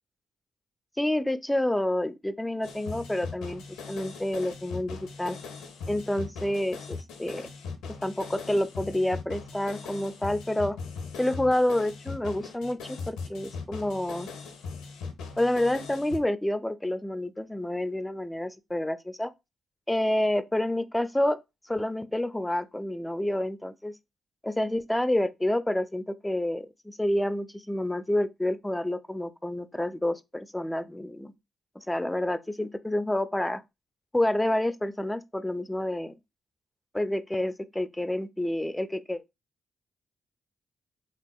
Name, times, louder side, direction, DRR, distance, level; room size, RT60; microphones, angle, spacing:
voice 1, 1.0-5.4 5.9-7.4 8.0-10.8 11.2-14.3 15.4-19.3 19.9-21.4 21.6-23.9 24.4-31.3 31.8-33.6 34.1-36.1 36.9-39.2, left 1 dB, 10° left, 0.4 m, -28 dB
sound 1, 2.6-16.2, left 5 dB, 80° left, 0.5 m, -40 dB
3.4 x 2.5 x 2.3 m
hypercardioid pair, 45°, 0 cm